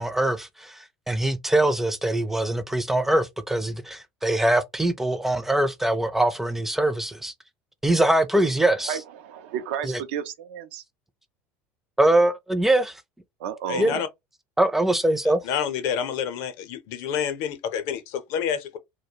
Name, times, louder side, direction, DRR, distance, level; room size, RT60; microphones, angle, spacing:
voice 1, 0.0-7.3 7.8-9.0 12.0-13.0 13.8-14.0 14.6-15.4, right 1 dB, 5° right, 0.4 m, -23 dB
voice 2, 8.8-10.8 13.4-14.1, right 9 dB, 85° right, 0.5 m, -32 dB
voice 3, 13.7-14.1 15.4-18.8, left 8 dB, 70° left, 0.6 m, -28 dB
2.3 x 2.1 x 2.7 m
supercardioid pair, 110°, 6 cm